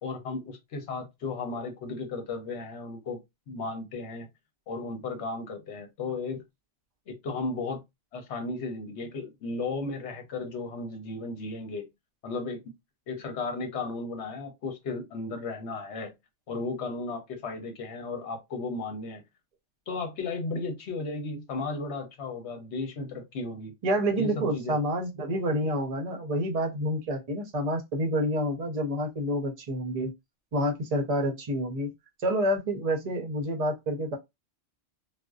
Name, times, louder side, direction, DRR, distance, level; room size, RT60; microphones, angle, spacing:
voice 1, 0.0-3.2 3.5-4.3 4.7-6.4 7.1-7.8 8.1-11.9 12.2-12.6 13.1-16.1 16.5-19.2 19.9-23.7 24.2-24.8, left 3 dB, 70° left, 1.0 m, -35 dB
voice 2, 23.8-30.1 30.5-31.9 32.2-34.2, equal, 45° right, 0.5 m, -28 dB
2.5 x 2.1 x 2.3 m
omnidirectional pair, 1.2 m